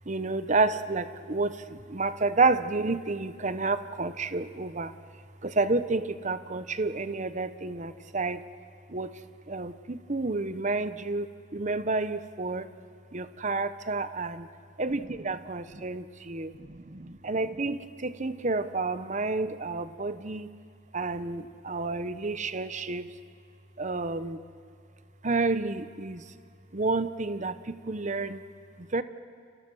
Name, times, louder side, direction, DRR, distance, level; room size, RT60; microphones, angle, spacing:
voice 1, 0.0-8.4 8.9-12.8 13.1-14.5 14.8-20.5 20.9-23.2 23.8-24.4 25.2-26.3 26.7-28.5 28.8-29.0, right 3 dB, 40° right, 12 dB, 1.0 m, -30 dB
29.5 x 29.0 x 6.4 m, 2.3 s
head